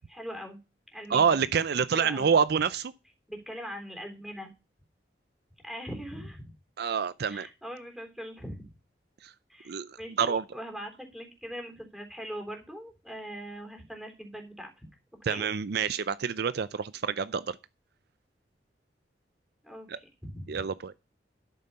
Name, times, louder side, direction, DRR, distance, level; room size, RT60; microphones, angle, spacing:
voice 1, 0.1-0.6 0.9-1.4 1.9-2.3 3.3-4.5 5.6-6.5 7.3-8.7 9.5-14.9 15.2-15.5 19.6-20.6, equal, ahead, 3.6 m, -41 dB
voice 2, 1.1-2.9 6.8-7.5 9.2-9.3 9.7-10.4 15.2-17.6 19.9-20.0 20.5-20.9, right 6 dB, 65° right, 0.5 m, -27 dB
12.5 x 6.8 x 5.5 m
head